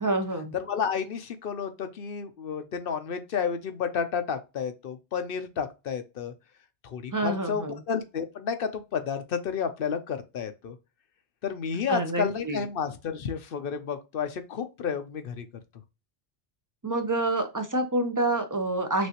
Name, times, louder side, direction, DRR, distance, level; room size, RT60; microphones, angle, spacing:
voice 1, 0.0-0.5 7.1-7.8 11.9-12.6 16.8-19.1, right 2 dB, 20° right, 0.7 m, -27 dB
voice 2, 0.5-6.3 6.8-10.8 11.4-15.5, left 6 dB, 65° left, 0.9 m, -31 dB
6.2 x 2.7 x 2.9 m
omnidirectional pair, 1.1 m